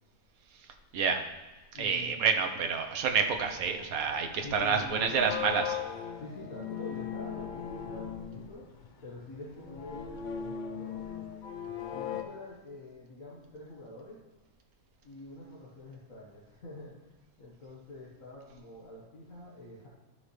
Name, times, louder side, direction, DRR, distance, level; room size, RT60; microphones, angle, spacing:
voice 1, 0.5-1.2 1.7-5.8, right 6 dB, 75° right, 5 dB, 1.3 m, -29 dB
voice 2, 1.7-2.2 4.4-5.3 6.2-11.0 11.9-14.2 15.0-19.9, left 2 dB, 65° left, -6 dB, 1.9 m, -46 dB
sound 1, 3.1-12.2, left 8 dB, 45° left, 0.6 m, -39 dB
14.0 x 5.7 x 3.2 m, 1.2 s
omnidirectional pair, 1.5 m